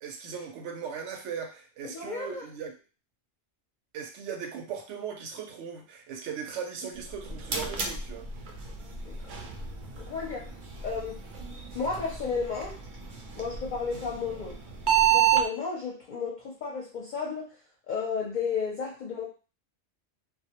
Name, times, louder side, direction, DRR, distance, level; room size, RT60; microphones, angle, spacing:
voice 1, 0.0-2.7 3.9-8.3, right 7 dB, 85° right, 4 dB, 0.9 m, -38 dB
voice 2, 1.8-2.4 9.0-9.2 10.0-10.5 10.8-11.2 11.7-12.8 13.4-14.6 15.0-17.5 17.9-19.3, left 5 dB, 55° left, -2 dB, 0.6 m, -33 dB
sound 1, 7.0-15.4, right 9 dB, 60° right, 0.5 m, -30 dB
2.1 x 2.1 x 2.8 m, 0.34 s
omnidirectional pair, 1.2 m